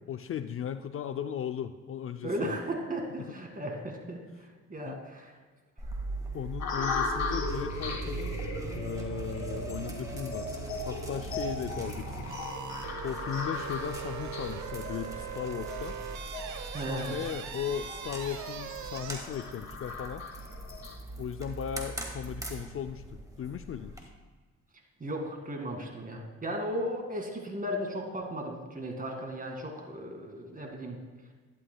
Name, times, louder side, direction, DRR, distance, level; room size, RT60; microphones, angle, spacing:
voice 1, 0.1-2.6 3.2-3.3 4.9-5.0 6.3-8.4 8.7-10.5 10.8-12.3 13.0-16.0 16.7-20.2 21.2-23.9, left 9 dB, 45° left, 9 dB, 0.4 m, -37 dB
voice 2, 2.2-5.3 16.7-17.2 25.0-31.0, equal, 30° right, 2 dB, 2.1 m, -36 dB
sound 1, 5.8-24.0, right 2 dB, 10° right, 1.8 m, -42 dB
sound 2, 6.6-20.9, left 3 dB, 65° left, 1.9 m, -38 dB
sound 3, 7.4-19.2, right 7 dB, 70° right, 1.0 m, -40 dB
12.0 x 11.0 x 2.3 m, 1.4 s
cardioid pair, 90°, 30 cm